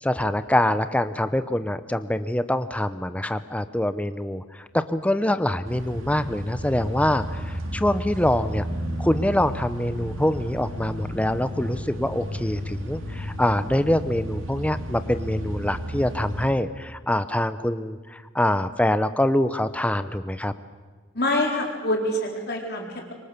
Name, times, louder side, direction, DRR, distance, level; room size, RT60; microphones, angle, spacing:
voice 1, 0.0-8.7 9.0-20.5, left 1 dB, 5° left, 11 dB, 0.7 m, -25 dB
sound 1, 5.6-16.5, equal, 85° right, 2.6 m, -33 dB
voice 2, 21.1-23.1, left 1 dB, 55° left, 0 dB, 4.2 m, -26 dB
26.5 x 24.0 x 6.7 m, 1.4 s
head